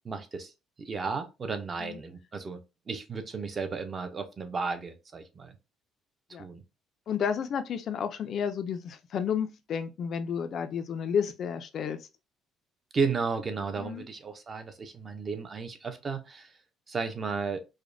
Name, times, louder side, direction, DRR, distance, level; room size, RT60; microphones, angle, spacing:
voice 1, 0.0-0.5 0.8-2.6 2.9-5.6 6.4-6.6 12.9-16.5 16.9-17.6, right 5 dB, 25° right, 0.5 m, -33 dB
voice 2, 7.1-12.1 13.8-14.0, left 7 dB, 45° left, 0.3 m, -31 dB
4.8 x 2.1 x 2.5 m
cardioid pair, 170°, 0 cm